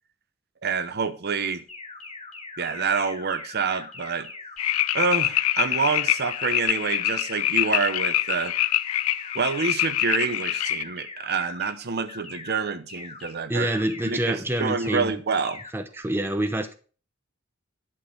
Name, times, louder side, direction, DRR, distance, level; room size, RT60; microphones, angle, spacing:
voice 1, 0.6-1.6 2.6-4.3 4.9-8.5 9.3-13.7 14.0-15.6, right 5 dB, 50° right, 0.8 m, -27 dB
sound 1, 1.7-11.7 12.1-12.5 12.9-13.3 13.7-14.1 14.5-14.9 15.3-15.7, left 4 dB, 30° left, 2.2 m, -41 dB
sound 2, 4.6-10.8, left 13 dB, 85° left, 0.4 m, -25 dB
voice 2, 13.5-15.2 15.7-16.7, right 1 dB, 10° right, 0.8 m, -27 dB
11.0 x 6.2 x 4.9 m
head